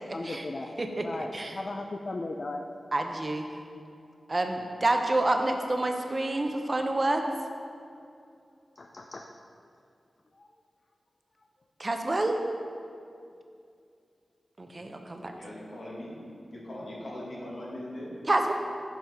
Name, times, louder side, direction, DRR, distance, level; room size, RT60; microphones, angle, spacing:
voice 1, 0.0-0.7 1.0-2.7 8.8-9.3 10.4-10.5, left 2 dB, 50° left, 3 dB, 0.4 m, -36 dB
voice 2, 0.8-1.6 2.9-3.4 4.3-7.2 11.8-12.4 14.6-15.3 18.3-18.5, right 2 dB, 40° right, 4 dB, 0.6 m, -28 dB
voice 3, 15.3-16.2 16.5-18.1, left 1 dB, 75° left, -5 dB, 1.6 m, -40 dB
7.3 x 5.2 x 3.5 m, 2.4 s
cardioid pair, 55°, 0 cm